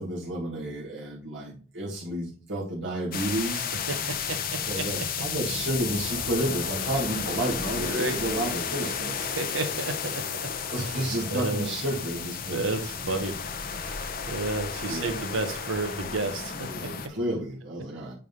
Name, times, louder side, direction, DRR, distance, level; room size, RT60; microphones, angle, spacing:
voice 1, 0.0-3.7 4.7-9.3 10.7-12.7 14.9-15.3 16.7-18.1, right 1 dB, 65° right, -6 dB, 2.1 m, -31 dB
sound 1, 3.1-17.1, left 6 dB, 45° left, 0.8 m, -33 dB
voice 2, 3.9-4.8 7.8-8.2 9.4-10.5 10.8-10.9 11.3-11.7 12.5-13.4 13.8-16.9, right 2 dB, 80° right, 7 dB, 1.3 m, -31 dB
8.4 x 3.6 x 4.0 m, 0.39 s
head